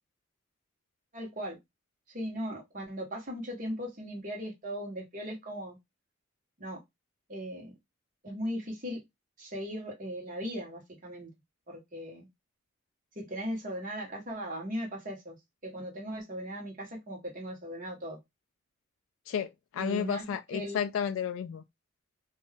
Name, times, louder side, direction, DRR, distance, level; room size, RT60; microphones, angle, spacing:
voice 1, 1.1-1.6 2.1-5.8 6.6-6.8 7.3-7.8 8.2-9.0 9.4-11.3 11.7-12.3 13.2-15.4 15.6-18.2 19.8-20.3 20.5-20.8, equal, 40° right, 1.1 m, -38 dB
voice 2, 19.3-21.6, left 8 dB, 75° left, 0.3 m, -32 dB
2.6 x 2.3 x 3.3 m
head